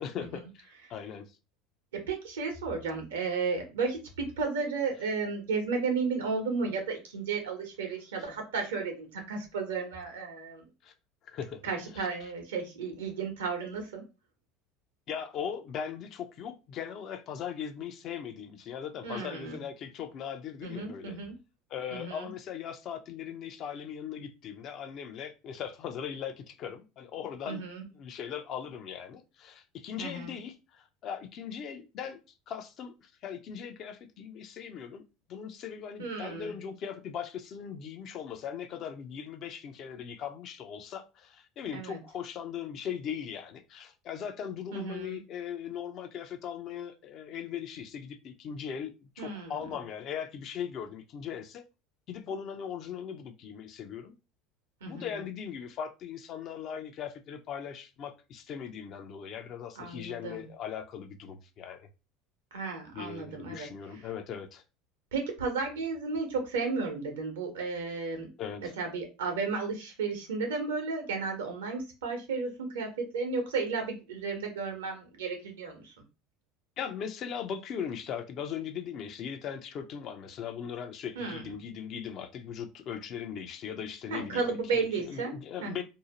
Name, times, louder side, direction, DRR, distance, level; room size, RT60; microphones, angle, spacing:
voice 1, 0.0-1.4 10.8-10.9 11.2-11.6 11.9-12.1 15.1-21.2 21.7-27.6 28.0-32.2 32.5-35.0 35.3-51.6 52.1-54.2 54.9-61.9 62.9-64.6 68.4-68.7 76.8-85.8, left 8 dB, 55° left, 0.5 m, -39 dB
voice 2, 1.9-10.6 11.6-14.0 19.0-19.6 20.6-21.3 21.9-22.3 27.5-27.8 30.0-30.4 36.0-36.5 41.7-42.0 44.7-45.2 49.2-49.8 54.8-55.3 59.8-60.5 62.5-63.7 63.9-64.0 65.1-68.3 68.8-75.9 81.2-81.5 84.1-85.3 85.6-85.8, right 4 dB, 90° right, 0.8 m, -33 dB
2.7 x 2.0 x 2.8 m
hypercardioid pair, 80°, 0 cm